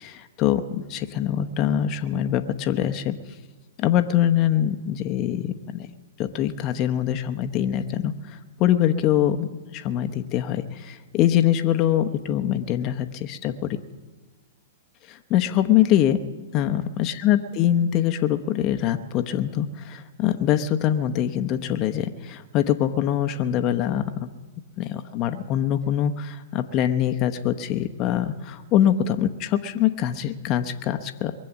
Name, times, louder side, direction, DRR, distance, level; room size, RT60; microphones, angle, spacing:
voice 1, 0.0-3.1 3.8-5.9 6.2-13.8 15.1-16.2 16.5-24.3 24.8-31.4, left 11 dB, 35° left, 7 dB, 0.9 m, -23 dB
22.5 x 7.6 x 7.2 m, 1.4 s
hypercardioid pair, 115°, 0 cm